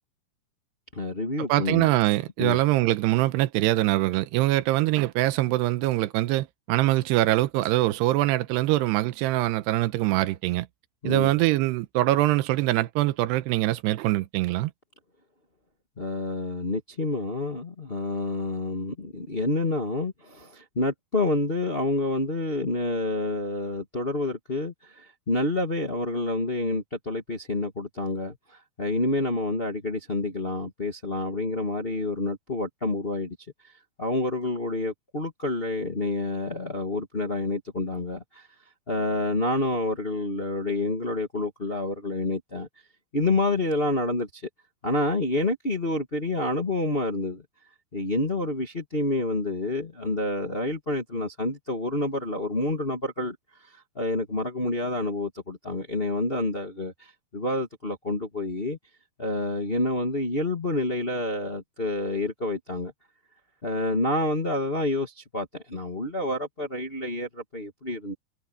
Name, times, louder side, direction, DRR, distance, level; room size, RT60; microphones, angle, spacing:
voice 1, 0.9-1.9 2.4-2.6 11.0-11.3 16.0-33.4 34.0-38.5 38.9-42.7 43.1-44.4 44.8-47.4 47.9-53.3 53.7-58.8 59.2-62.9 63.6-68.1, left 2 dB, 55° left, 0.6 m, -28 dB
voice 2, 1.5-10.7 11.0-14.7, right 17 dB, 90° right, 2.9 m, -23 dB
omnidirectional pair, 4.8 m